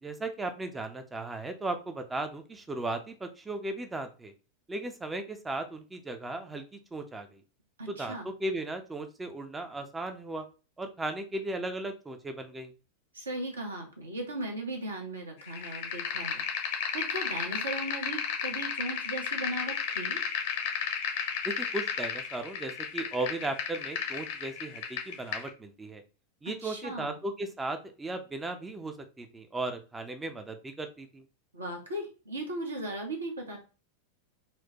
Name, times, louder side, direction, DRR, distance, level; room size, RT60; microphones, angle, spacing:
voice 1, 0.0-4.3 4.7-7.4 7.9-10.5 10.8-12.7 21.4-26.0 26.4-31.2, right 2 dB, 10° right, 7 dB, 0.5 m, -36 dB
voice 2, 7.8-8.3 13.1-20.2 26.6-27.1 31.5-33.6, right 1 dB, 75° right, 1 dB, 1.0 m, -37 dB
sound 1, 15.5-25.5, left 7 dB, 55° left, 0.7 m, -33 dB
4.2 x 2.1 x 2.9 m, 0.33 s
figure-of-eight pair, 90°, 0 cm